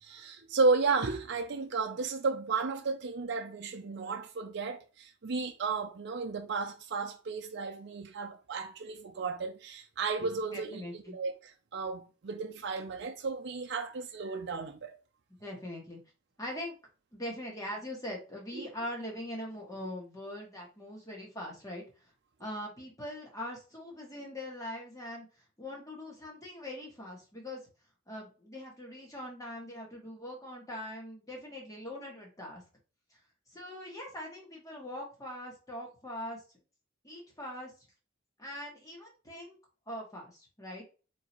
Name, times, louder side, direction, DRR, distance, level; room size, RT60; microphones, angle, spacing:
voice 1, 0.0-14.9 18.5-18.7, right 4 dB, 60° right, 0.5 m, -33 dB
voice 2, 10.5-11.2 15.4-16.0 16.4-16.8 17.1-22.1 22.4-27.6 28.1-32.6 33.1-33.2 33.5-36.4 37.0-37.9 38.4-39.6 39.9-40.8, left 1 dB, 20° left, 1.8 m, -42 dB
4.5 x 3.9 x 3.0 m
head